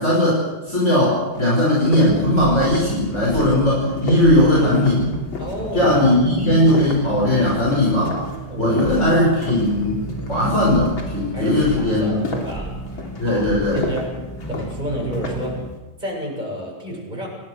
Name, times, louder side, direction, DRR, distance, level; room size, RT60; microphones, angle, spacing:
voice 1, 0.0-5.1 5.7-8.2 8.6-10.0 10.3-12.1 13.2-13.9, left 1 dB, 35° left, -4 dB, 6.1 m, -18 dB
sound 1, 0.9-1.0 1.3-9.8 10.1-10.5 10.8-15.6, left 3 dB, 85° left, 4.2 m, -32 dB
sound 2, 2.0-15.7, right 1 dB, 10° left, 2.3 m, -33 dB
voice 2, 5.4-5.9 6.3-6.8 8.5-9.1 11.3-12.7 13.2-14.1 14.5-15.7 16.0-17.3, equal, 20° right, -1 dB, 7.7 m, -31 dB
29.5 x 19.0 x 6.7 m, 1.2 s
omnidirectional pair, 2.1 m